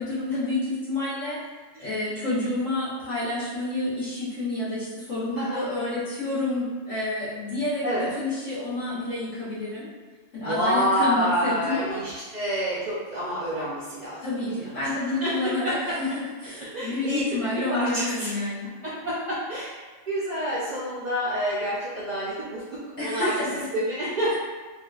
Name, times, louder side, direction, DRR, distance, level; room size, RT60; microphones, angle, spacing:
voice 1, 0.0-1.4 1.8-9.9 10.3-12.0 14.2-18.7 23.0-23.7, left 2 dB, 85° left, -10 dB, 1.2 m, -29 dB
voice 2, 5.3-5.7 7.8-8.1 10.4-14.2 14.5-16.0 16.5-18.3 18.8-19.8 20.1-23.3 23.7-24.3, equal, 80° right, -8 dB, 0.3 m, -28 dB
2.6 x 2.4 x 2.2 m, 1.3 s
omnidirectional pair, 1.3 m